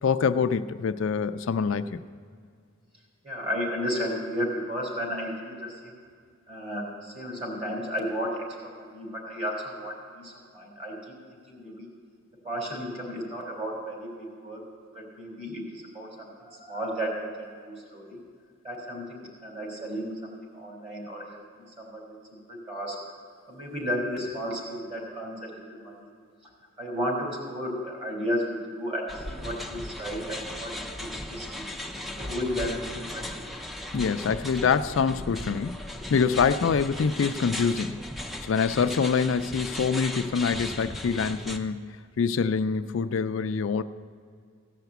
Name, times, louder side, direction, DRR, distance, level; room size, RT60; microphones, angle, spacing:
voice 1, 0.0-2.0 33.9-35.8 36.1-38.0 38.4-41.9 42.2-43.8, left 6 dB, 65° left, 10 dB, 0.4 m, -25 dB
voice 2, 3.2-6.0 6.5-11.1 11.4-11.9 12.4-14.6 14.9-18.2 18.6-23.0 23.5-26.1 26.8-31.7 32.2-33.4, equal, 30° right, -2 dB, 3.4 m, -33 dB
sound 1, 29.1-41.6, left 1 dB, ahead, 0.6 m, -37 dB
16.5 x 5.9 x 8.0 m, 2.1 s
head